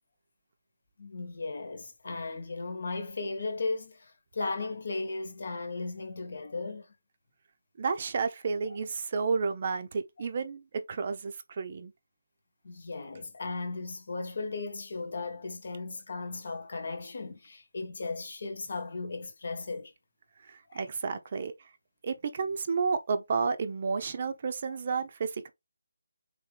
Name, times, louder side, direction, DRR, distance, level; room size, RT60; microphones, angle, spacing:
voice 1, 1.0-6.9 8.7-8.8 12.6-19.9 20.7-20.9, left 3 dB, 55° left, 1.1 m, -36 dB
voice 2, 7.8-11.9 20.4-21.7 22.0-25.5, right 5 dB, 35° right, 0.6 m, -31 dB
4.2 x 3.5 x 3.3 m
figure-of-eight pair, 170°, 0 cm